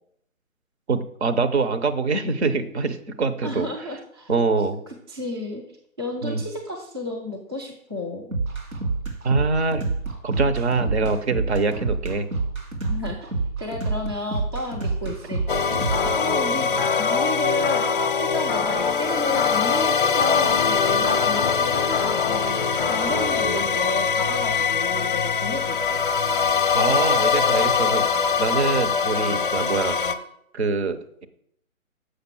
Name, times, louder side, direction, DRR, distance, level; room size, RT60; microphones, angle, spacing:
voice 1, 0.9-3.7 4.3-4.8 6.2-6.4 9.2-9.9 10.2-12.3 26.7-28.1 28.4-30.1 30.5-31.2, right 4 dB, 50° right, 9 dB, 0.9 m, -24 dB
voice 2, 3.4-4.3 4.9-5.6 6.0-8.4 12.9-22.6 22.9-26.0, left 2 dB, 20° right, 0 dB, 0.5 m, -32 dB
sound 1, 8.3-16.2, right 3 dB, 70° right, 2.4 m, -28 dB
sound 2, 15.5-30.1, left 6 dB, 40° left, 0.6 m, -22 dB
6.6 x 5.4 x 6.0 m, 0.72 s
figure-of-eight pair, 145°, 42 cm